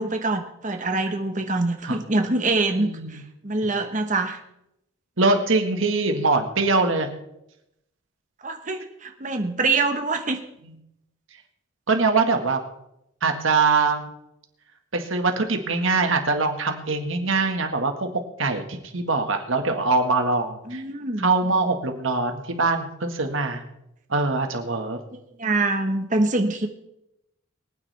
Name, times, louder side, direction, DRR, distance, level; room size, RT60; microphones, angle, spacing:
voice 1, 0.0-4.4 8.4-10.4 20.7-21.3 25.1-26.7, right 2 dB, 35° right, 5 dB, 1.2 m, -25 dB
voice 2, 2.7-3.2 5.2-7.1 10.6-10.7 11.9-12.6 13.2-14.0 14.9-18.1 18.4-20.8 21.2-23.6 24.1-25.0, right 3 dB, 70° right, 5 dB, 1.7 m, -23 dB
24.0 x 9.4 x 3.5 m, 0.83 s
head